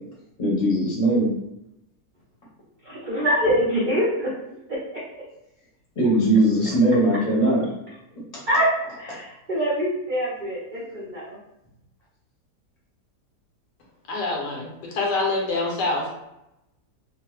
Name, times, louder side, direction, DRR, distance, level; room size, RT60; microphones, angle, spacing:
voice 1, 0.4-1.3 6.0-7.7, right 1 dB, 30° left, -5 dB, 0.7 m, -20 dB
voice 2, 2.8-4.3 8.5-8.6 9.0-11.4, equal, 60° right, -7 dB, 0.5 m, -24 dB
voice 3, 14.1-14.7 14.9-16.1, left 2 dB, 80° left, -1 dB, 1.4 m, -25 dB
3.1 x 2.1 x 3.1 m, 0.86 s
omnidirectional pair, 1.8 m